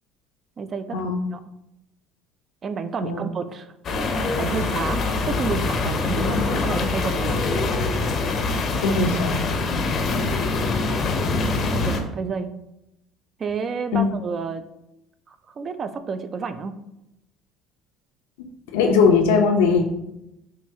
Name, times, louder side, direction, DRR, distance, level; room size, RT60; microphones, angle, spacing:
voice 1, 0.6-1.4 2.6-3.7 4.4-7.4 11.7-12.5 13.4-14.6 15.3-16.7, right 5 dB, 35° right, 10 dB, 0.3 m, -30 dB
sound 1, 3.8-12.0, left 3 dB, 45° left, 0.6 m, -24 dB
voice 2, 8.8-9.4 13.9-14.0 18.7-19.9, left 5 dB, 90° left, 4 dB, 0.5 m, -19 dB
5.6 x 2.3 x 2.7 m, 0.87 s
supercardioid pair, 100°, 0 cm